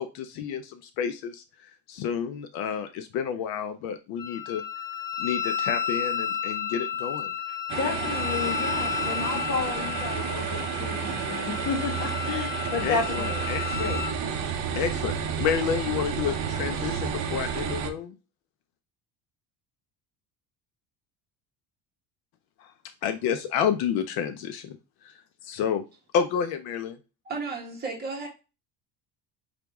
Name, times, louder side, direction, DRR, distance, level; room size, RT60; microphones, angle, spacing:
voice 1, 0.0-4.6 5.2-7.3 12.8-13.7 14.8-18.2 22.6-22.7 23.0-24.8 25.0-25.1 25.4-25.8 26.1-27.0, left 8 dB, 65° left, 0.6 m, -30 dB
Wind instrument woodwind instrument, 4.2-14.1, left 9 dB, 25° left, 0.7 m, -32 dB
sound 1, 7.7-17.9, right 7 dB, 45° right, 0.7 m, -31 dB
voice 2, 7.8-13.4 13.8-14.4, left 4 dB, 45° left, 1.4 m, -32 dB
voice 3, 27.2-28.3, right 4 dB, 25° right, 1.3 m, -33 dB
5.1 x 3.0 x 3.4 m
cardioid pair, 180°, 39 cm